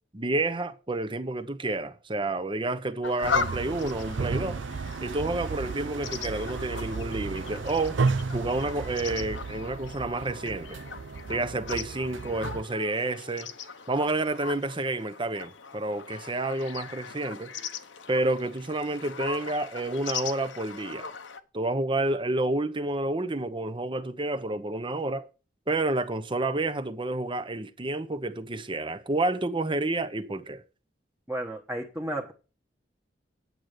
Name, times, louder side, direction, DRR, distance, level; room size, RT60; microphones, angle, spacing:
voice 1, 0.1-4.6 5.0-8.0 8.3-10.8 11.3-13.5 13.9-17.5 18.1-21.1 21.5-25.3 25.7-30.6, right 2 dB, 25° right, 0.9 m, -29 dB
sound 1, 3.0-21.4, left 5 dB, 85° left, 1.1 m, -38 dB
sound 2, 3.2-12.6, right 4 dB, 80° right, 0.5 m, -33 dB
voice 2, 31.3-32.3, right 1 dB, 10° right, 1.2 m, -33 dB
9.4 x 7.9 x 6.7 m
head